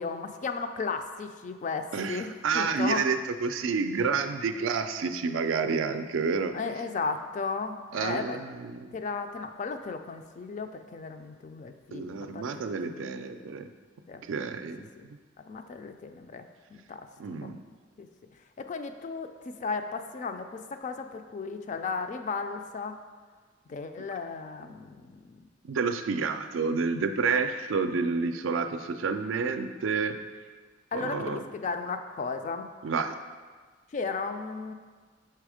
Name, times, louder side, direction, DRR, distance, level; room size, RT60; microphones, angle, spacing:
voice 1, 0.0-3.0 6.5-8.4 8.9-12.5 12.8-13.1 13.5-13.6 14.1-14.2 15.0-15.1 15.5-16.5 16.7-17.0 17.4-17.5 18.0-18.1 18.6-22.9 23.7-25.4 30.9-32.7 33.9-34.7, left 4 dB, 40° left, 7 dB, 0.3 m, -35 dB
voice 2, 1.9-6.5 7.9-8.9 11.9-13.7 14.2-14.8 17.2-17.6 25.6-30.2 30.9-31.4 32.8-33.2, right 5 dB, 80° right, 8 dB, 0.4 m, -29 dB
5.7 x 3.4 x 4.9 m, 1.5 s
head